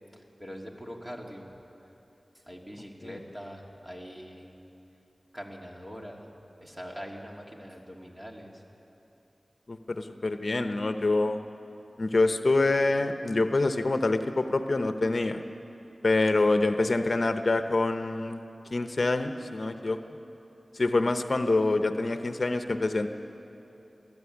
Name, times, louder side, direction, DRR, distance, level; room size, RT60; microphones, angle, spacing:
voice 1, 0.1-1.5 2.5-4.5 5.3-6.3 6.6-8.6, equal, 15° right, -1 dB, 3.0 m, -43 dB
voice 2, 9.7-11.4 12.0-15.4 16.0-18.4 18.7-20.0 20.8-23.1, left 2 dB, 60° left, 7 dB, 0.9 m, -26 dB
21.5 x 14.0 x 9.7 m, 3.0 s
wide cardioid pair, 45°, 0 cm